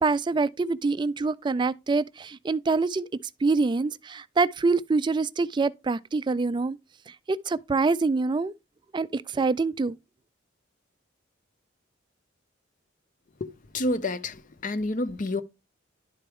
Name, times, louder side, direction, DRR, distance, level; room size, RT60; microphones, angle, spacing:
voice 1, 0.0-3.1 3.4-6.8 7.3-8.5 8.9-10.0, right 3 dB, 25° right, 0.3 m, -25 dB
voice 2, 13.4-14.4 14.6-15.4, left 2 dB, 40° left, 0.6 m, -29 dB
11.0 x 4.5 x 3.5 m
head